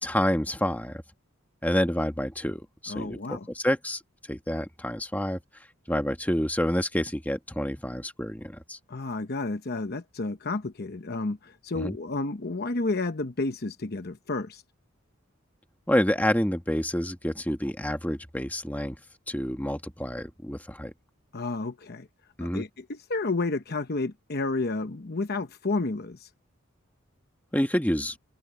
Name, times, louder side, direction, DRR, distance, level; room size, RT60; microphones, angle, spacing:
voice 1, 0.0-1.0 1.6-4.0 4.3-5.4 5.9-8.8 11.7-12.0 15.9-19.0 19.3-20.9 22.4-22.6 27.5-28.2, left 1 dB, 10° left, 1.6 m, -28 dB
voice 2, 2.9-3.5 8.9-14.6 21.3-22.1 22.4-26.3, left 3 dB, 50° left, 1.0 m, -31 dB
head